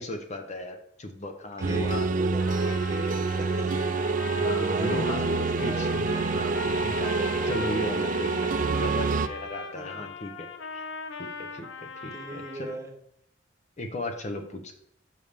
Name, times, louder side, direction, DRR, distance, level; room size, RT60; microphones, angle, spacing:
voice 1, 0.0-2.1 4.4-5.3 5.6-10.5 10.7-10.9 11.2-11.7 12.0-12.7 13.8-14.7, left 1 dB, 40° left, 5 dB, 0.8 m, -36 dB
voice 2, 1.6-3.9 4.4-5.9 9.8-10.1 12.1-12.9, right 1 dB, 15° right, 2 dB, 1.2 m, -38 dB
sound 1, 1.6-9.3, right 4 dB, 45° right, 0.4 m, -27 dB
Trumpet, 2.4-12.8, left 4 dB, 80° left, 0.7 m, -39 dB
5.5 x 5.4 x 6.6 m, 0.72 s
head